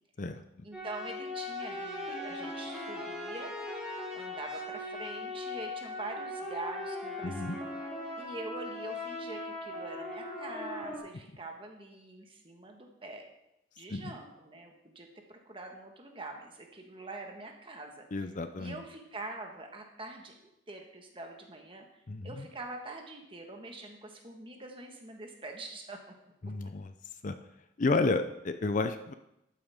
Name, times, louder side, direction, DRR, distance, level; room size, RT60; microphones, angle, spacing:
voice 1, 0.6-3.5 4.1-7.6 8.2-13.2 13.8-18.3 18.6-20.3 20.7-26.1, right 2 dB, 25° right, 2 dB, 1.4 m, -44 dB
sound 1, 0.7-11.0, left 1 dB, 5° right, 2.3 m, -39 dB
voice 2, 7.2-7.6 13.9-14.1 18.1-18.8 22.1-22.5 26.4-26.9 27.2-27.4 27.8-29.1, left 3 dB, 40° left, 9 dB, 0.5 m, -31 dB
12.0 x 9.1 x 3.5 m, 0.86 s
head